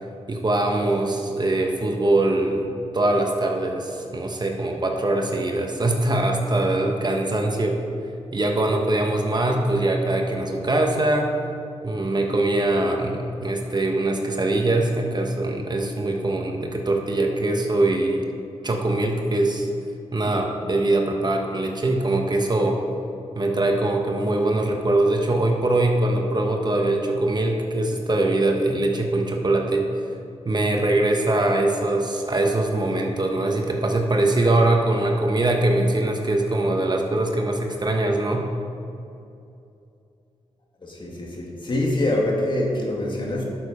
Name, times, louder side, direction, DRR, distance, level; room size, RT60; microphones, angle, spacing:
voice 1, 0.3-7.8 8.3-11.3 11.8-18.3 18.6-19.7 20.1-22.8 23.3-29.8 30.4-38.5, right 2 dB, 35° right, 2 dB, 1.2 m, -22 dB
voice 2, 40.8-43.4, left 1 dB, 40° left, -2 dB, 2.2 m, -25 dB
11.5 x 6.8 x 5.0 m, 2.6 s
cardioid pair, 70°, 12 cm